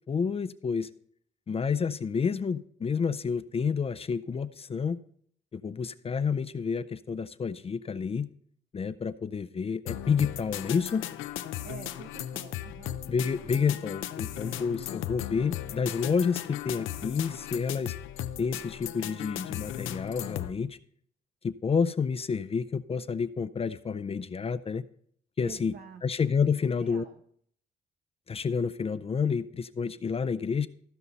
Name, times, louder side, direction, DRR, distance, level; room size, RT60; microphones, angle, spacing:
voice 1, 0.1-0.9 1.5-5.0 5.5-8.3 8.7-11.1 13.1-17.9 18.4-20.8 21.4-24.8 25.4-25.7 26.0-27.0 28.3-30.7, left 6 dB, 30° left, 13 dB, 0.4 m, -29 dB
sound 1, 9.9-20.5, left 12 dB, 80° left, 0.5 m, -37 dB
voice 2, 11.6-13.0 13.4-13.9 14.4-14.7 25.4-27.2, right 8 dB, 50° right, 5 dB, 0.7 m, -48 dB
15.0 x 5.5 x 4.0 m, 0.63 s
cardioid pair, 90°, 20 cm